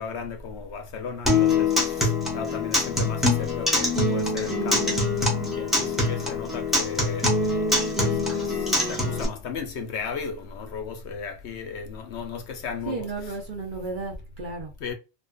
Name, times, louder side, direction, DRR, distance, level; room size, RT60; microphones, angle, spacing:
voice 1, 0.0-2.1 2.3-5.0 5.6-13.1 14.8-14.9, left 5 dB, 70° left, 0.8 m, -35 dB
Acoustic guitar, 1.3-9.2, left 2 dB, ahead, 0.6 m, -24 dB
voice 2, 5.7-6.2 12.9-14.7, right 3 dB, 50° right, 0.7 m, -34 dB
2.5 x 2.3 x 2.2 m
omnidirectional pair, 1.3 m